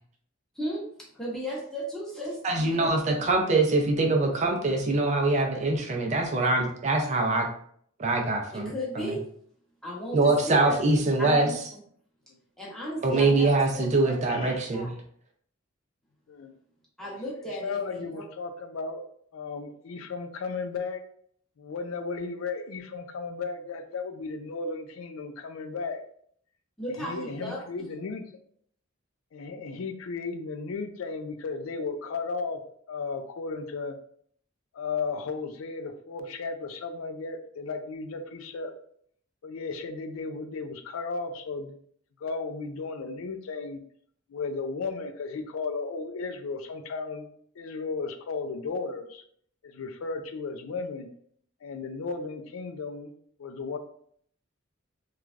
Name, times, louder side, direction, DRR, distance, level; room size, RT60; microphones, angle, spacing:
voice 1, 0.5-2.9 8.5-9.2 9.8-10.7 11.2-11.5 12.6-13.5 14.0-14.2 14.7-14.9 17.0-18.2 26.8-27.7, equal, 5° left, -5 dB, 0.8 m, -35 dB
voice 2, 2.4-7.5 8.0-9.1 10.1-11.5 13.0-14.9, right 2 dB, 35° right, 2 dB, 0.4 m, -24 dB
voice 3, 17.6-19.1 19.3-21.0 21.6-26.0 26.9-28.4 29.3-32.6 32.9-34.0 34.7-38.7 39.4-41.8 42.2-43.8 44.3-47.3 47.6-49.2 49.6-51.1 51.6-53.1 53.4-53.8, left 4 dB, 90° left, 7 dB, 0.4 m, -34 dB
3.1 x 2.3 x 2.4 m, 0.62 s
head